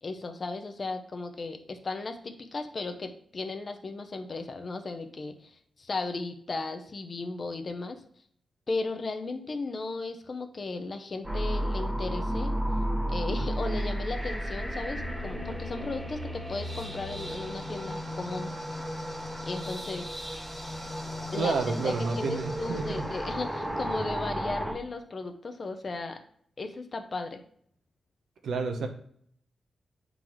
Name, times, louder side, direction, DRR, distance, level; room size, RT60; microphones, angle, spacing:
voice 1, 0.0-8.0 8.7-12.5 13.1-18.5 19.4-20.1 21.3-21.5 21.8-26.2 26.6-27.4, left 3 dB, 35° left, 6 dB, 0.6 m, -35 dB
sound 1, 11.2-24.7, equal, 10° right, 1.1 m, -33 dB
voice 2, 21.4-23.1 28.4-28.9, right 4 dB, 80° right, 5 dB, 0.8 m, -30 dB
9.0 x 3.9 x 3.1 m, 0.63 s
wide cardioid pair, 155°, 0 cm